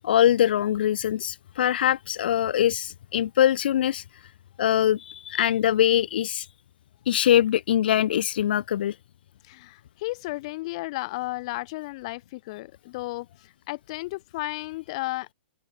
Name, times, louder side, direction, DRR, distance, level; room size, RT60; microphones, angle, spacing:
voice 1, 0.0-4.0 4.6-6.5 7.1-8.9, left 11 dB, 55° left, 0.8 m, -23 dB
voice 2, 9.5-13.3 13.7-15.3, left 21 dB, 35° left, 1.0 m, -33 dB
open air
hypercardioid pair, 170°, 6 cm